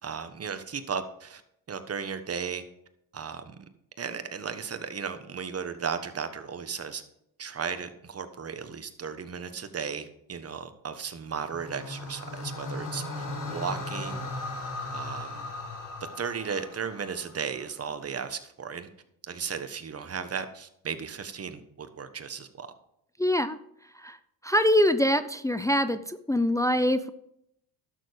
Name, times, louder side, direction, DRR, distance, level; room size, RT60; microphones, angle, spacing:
voice 1, 0.0-1.4 1.7-2.6 3.1-3.6 4.0-7.0 7.4-14.2 14.9-15.4 16.2-18.9 19.3-22.7, right 6 dB, 30° right, 9 dB, 1.3 m, -35 dB
sound 1, 11.3-17.6, left 2 dB, 40° left, 4.3 m, -37 dB
voice 2, 23.2-23.6 23.9-24.2 24.4-27.1, left 1 dB, 5° left, 11 dB, 0.5 m, -24 dB
12.0 x 6.8 x 5.1 m, 0.75 s
supercardioid pair, 75°, 45 cm